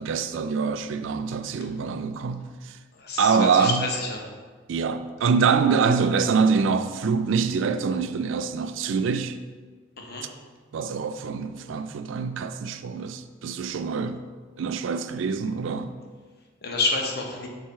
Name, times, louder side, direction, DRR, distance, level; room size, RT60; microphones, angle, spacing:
voice 1, 0.0-2.8 3.2-3.9 4.7-9.4 10.7-14.2 14.6-15.9, right 5 dB, 65° right, 0.4 m, -25 dB
voice 2, 3.0-4.2 10.0-10.3 16.6-17.5, left 3 dB, 50° left, 0.8 m, -28 dB
4.7 x 4.0 x 5.5 m
head